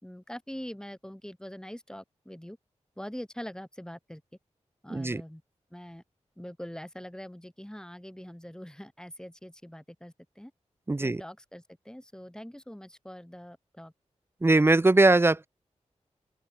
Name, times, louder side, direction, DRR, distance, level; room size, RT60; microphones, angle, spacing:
voice 1, 0.0-2.6 3.0-4.2 4.8-5.4 5.7-6.0 6.4-10.5 11.0-13.9, equal, 5° left, 4.3 m, -43 dB
voice 2, 4.9-5.2 10.9-11.2 14.4-15.5, right 2 dB, 20° right, 0.5 m, -21 dB
open air
cardioid pair, 55°, 12 cm